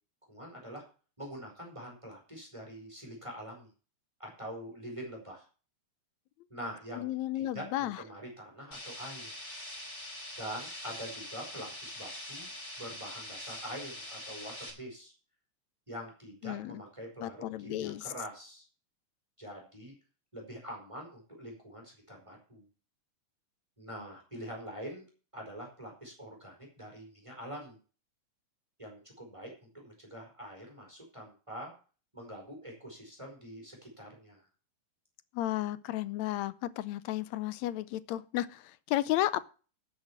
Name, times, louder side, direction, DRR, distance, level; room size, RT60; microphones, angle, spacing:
voice 1, 0.3-0.8 1.2-3.7 4.2-5.5 6.5-9.3 10.4-12.5 12.8-15.1 15.9-18.7 19.4-19.9 20.3-22.6 23.8-25.0 25.3-27.8 28.8-29.5 29.8-31.7 32.1-34.4, equal, 10° right, 4.4 m, -45 dB
voice 2, 7.0-8.0 16.4-16.8 17.2-18.0 35.3-39.5, left 14 dB, 75° left, 1.9 m, -33 dB
sound 1, 8.7-14.7, left 1 dB, 20° left, 3.9 m, -43 dB
12.5 x 6.6 x 7.1 m
omnidirectional pair, 3.3 m